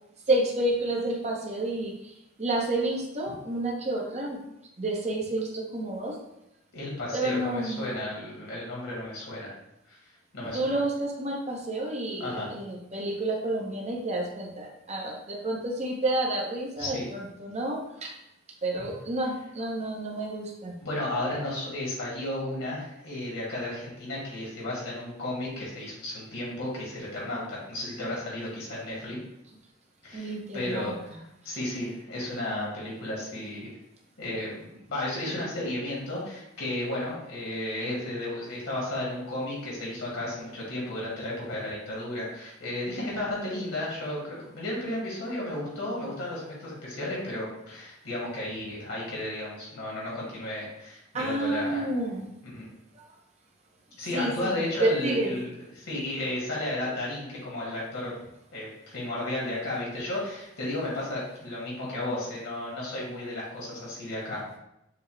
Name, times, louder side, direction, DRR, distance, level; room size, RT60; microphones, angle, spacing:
voice 1, 0.3-1.9 2.4-4.4 4.8-6.2 7.1-7.8 10.4-18.1 18.6-20.8 30.1-31.0 51.1-52.3 52.9-53.1 54.1-55.4, right 1 dB, 35° right, -1 dB, 0.9 m, -30 dB
voice 2, 6.7-9.5 9.9-10.0 10.3-10.8 12.2-12.5 16.8-17.1 20.8-29.2 30.0-31.2 31.4-33.7 34.2-51.9 52.4-52.6 54.0-58.1 58.5-64.6, left 1 dB, 85° left, -5 dB, 1.7 m, -33 dB
6.7 x 2.3 x 3.2 m, 0.84 s
head